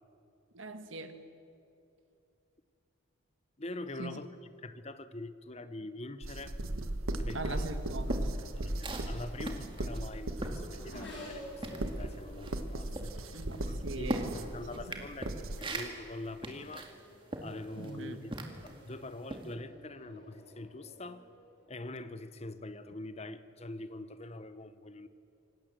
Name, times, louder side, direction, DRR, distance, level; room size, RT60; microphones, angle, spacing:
voice 1, 0.5-1.2 4.0-4.2 7.3-8.4 13.3-14.3 14.7-15.0 17.8-18.2, right 2 dB, 65° right, 8 dB, 1.7 m, -41 dB
voice 2, 3.6-4.3 4.6-6.6 7.2-7.7 8.6-15.3 15.6-16.9 17.4-18.3 18.6-21.3 21.7-25.1, left 2 dB, 30° left, 12 dB, 0.9 m, -44 dB
sound 1, 6.2-15.6, right 1 dB, 85° right, 1.4 m, -37 dB
sound 2, 7.6-11.3 11.6-18.8 19.3-19.5, right 1 dB, 25° right, 2.1 m, -40 dB
Race car auto racing / Accelerating revving vroom, 9.8-14.9 15.7-16.1 16.5-22.4, left 1 dB, 60° left, 7.2 m, -52 dB
26.5 x 19.0 x 7.6 m, 2.6 s
head